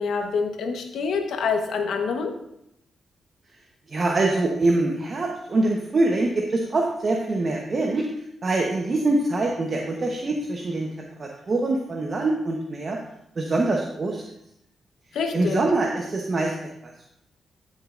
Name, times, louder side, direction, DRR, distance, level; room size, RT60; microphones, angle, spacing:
voice 1, 0.0-2.3 15.1-15.6, left 5 dB, 85° left, 5 dB, 1.1 m, -26 dB
voice 2, 3.9-8.1 8.4-13.0 13.4-14.2 15.3-17.1, right 2 dB, 45° right, 0 dB, 1.0 m, -24 dB
14.0 x 6.3 x 2.5 m, 0.78 s
cardioid pair, 80°, 0 cm